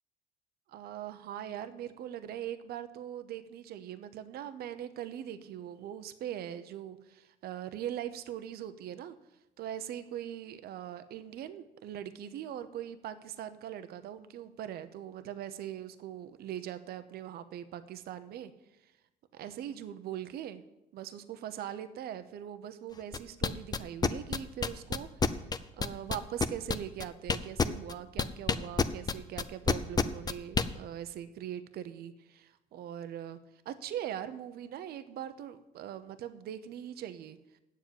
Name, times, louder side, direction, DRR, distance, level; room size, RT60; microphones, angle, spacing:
voice 1, 0.7-9.2 9.6-18.5 19.3-20.6 20.9-25.4 25.8-33.4 33.6-37.4, right 10 dB, 65° right, 11 dB, 0.8 m, -41 dB
sound 1, 23.1-30.7, left 5 dB, 25° left, 0.6 m, -28 dB
8.9 x 7.5 x 8.8 m, 0.93 s
cardioid pair, 110°, 17 cm